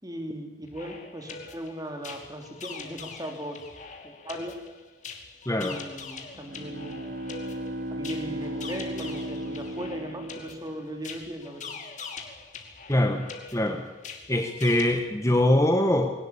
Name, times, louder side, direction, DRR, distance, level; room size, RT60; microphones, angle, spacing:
voice 1, 0.0-3.6 4.0-4.5 5.6-7.1 7.9-11.7, right 1 dB, 20° right, 4 dB, 3.3 m, -38 dB
sound 1, 0.6-15.0, left 5 dB, 40° left, 2.7 m, -43 dB
voice 2, 5.4-5.8 12.9-13.8 14.3-16.1, left 1 dB, 15° left, 4 dB, 1.4 m, -23 dB
Bowed string instrument, 6.3-11.1, right 1 dB, 50° right, 2.5 m, -36 dB
22.0 x 18.0 x 8.8 m, 1.2 s
head